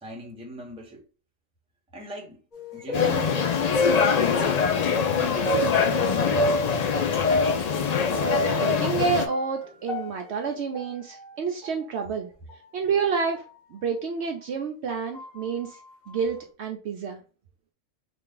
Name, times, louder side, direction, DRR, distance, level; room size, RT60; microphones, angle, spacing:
voice 1, 0.0-1.0 1.9-2.4 2.7-3.5 3.9-5.7, right 1 dB, 5° right, 0.7 m, -39 dB
sound 1, 2.5-4.7 5.5-8.7 9.0-11.4 11.6-11.7 12.5-12.6 13.4-13.6 14.2-14.3 15.1-15.4, equal, 35° left, 2.0 m, -30 dB
sound 2, 2.9-9.3, left 6 dB, 85° left, 0.3 m, -24 dB
voice 2, 8.5-12.3 12.7-13.4 13.7-15.8 16.1-17.2, right 6 dB, 65° right, 0.8 m, -29 dB
3.3 x 2.5 x 3.7 m
omnidirectional pair, 1.4 m